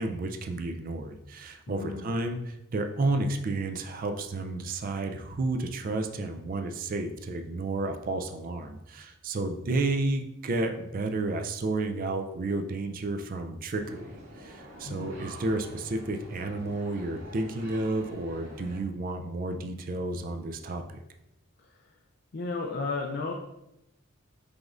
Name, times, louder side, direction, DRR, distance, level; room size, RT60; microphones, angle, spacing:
voice 1, 0.0-21.0, right 2 dB, 40° right, 6 dB, 0.4 m, -31 dB
voice 2, 1.7-2.1 14.9-15.1 21.6-21.9 22.3-23.3, left 3 dB, 50° left, 1 dB, 0.4 m, -34 dB
sound 1, 13.8-18.8, right 1 dB, 65° right, 1.6 m, -47 dB
5.0 x 3.7 x 2.5 m, 0.89 s
head